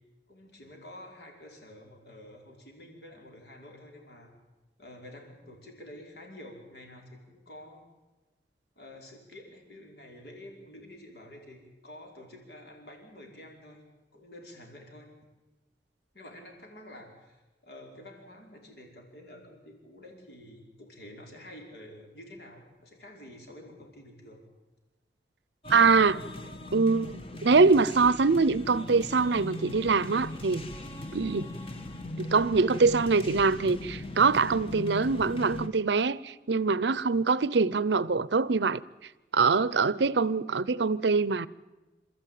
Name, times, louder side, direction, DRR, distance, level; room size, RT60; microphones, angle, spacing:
voice 1, 0.3-4.3 4.8-7.8 8.8-13.8 14.1-15.1 16.1-17.4 17.6-24.4, left 1 dB, 70° left, 5.4 m, -49 dB
sound 1, 25.6-35.7, left 1 dB, 30° left, 1.4 m, -39 dB
voice 2, 25.7-26.2 26.7-30.6 31.1-31.5 32.2-38.8 39.3-41.5, right 4 dB, 80° right, 0.7 m, -24 dB
27.0 x 13.5 x 9.3 m
head